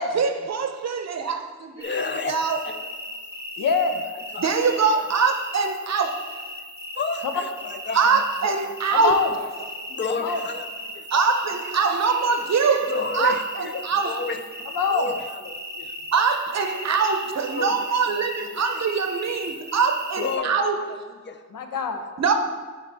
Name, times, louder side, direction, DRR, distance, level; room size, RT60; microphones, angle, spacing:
voice 1, 0.0-1.8 2.3-2.6 4.4-6.2 7.9-9.2 11.1-14.2 16.1-20.7 22.2-22.3, right 5 dB, 55° right, 6 dB, 0.6 m, -23 dB
voice 2, 1.8-2.8 4.1-4.6 6.9-8.5 9.9-10.7 10.9-11.1 12.9-16.0 17.5-18.8 20.2-21.4, left 4 dB, 35° left, 8 dB, 0.5 m, -32 dB
sound 1, 1.8-20.4, equal, 10° right, 0.9 m, -37 dB
voice 3, 3.6-4.0 8.9-9.3 10.2-10.4 14.8-15.1 21.5-22.1, left 5 dB, 90° left, 5 dB, 0.8 m, -24 dB
10.5 x 4.0 x 3.4 m, 1.4 s
wide cardioid pair, 120°, 32 cm